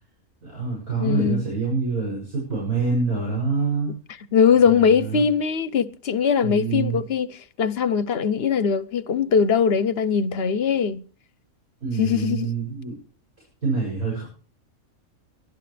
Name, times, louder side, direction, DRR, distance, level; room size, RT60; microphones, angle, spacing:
voice 1, 0.4-3.9 4.6-5.2 6.4-7.0 11.8-13.0 13.6-14.3, right 4 dB, 75° right, 8.0 m, -26 dB
voice 2, 1.0-1.4 4.3-7.3 7.6-11.0 12.0-12.5, left 6 dB, 50° left, 1.0 m, -21 dB
23.0 x 12.0 x 3.4 m
omnidirectional pair, 1.5 m